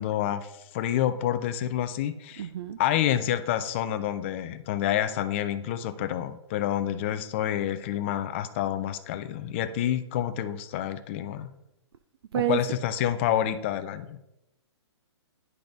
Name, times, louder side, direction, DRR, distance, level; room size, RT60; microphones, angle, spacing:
voice 1, 0.0-2.5 2.8-11.5 12.4-14.2, left 11 dB, 25° left, 11 dB, 0.4 m, -28 dB
voice 2, 2.4-2.8 12.3-12.6, right 14 dB, 60° right, 10 dB, 0.4 m, -28 dB
10.5 x 3.9 x 3.4 m, 0.91 s
hypercardioid pair, 155°, 15 cm